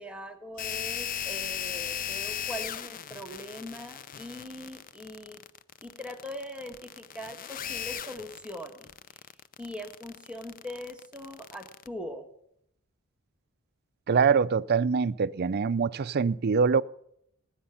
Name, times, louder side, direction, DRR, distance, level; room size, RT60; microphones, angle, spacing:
voice 1, 0.0-5.4 5.8-8.9 9.6-12.3, equal, 5° right, 1.4 m, -41 dB
sound 1, 0.6-11.9, left 9 dB, 40° left, 0.5 m, -37 dB
voice 2, 14.1-16.8, right 5 dB, 45° right, 0.4 m, -24 dB
18.0 x 8.8 x 5.8 m
head